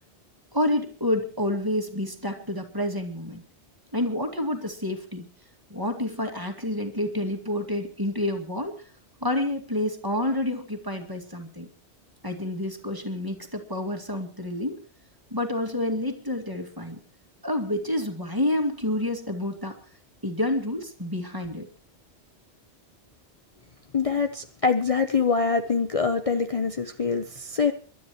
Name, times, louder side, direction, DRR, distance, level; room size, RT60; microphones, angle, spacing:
voice 1, 0.5-3.4 3.9-5.3 5.7-8.7 9.2-11.7 12.2-14.8 15.3-17.0 17.4-19.8 20.2-21.7, left 1 dB, 20° right, 4 dB, 2.3 m, -28 dB
voice 2, 23.9-27.7, left 5 dB, 35° left, 7 dB, 0.9 m, -24 dB
29.0 x 12.5 x 3.1 m, 0.37 s
omnidirectional pair, 1.1 m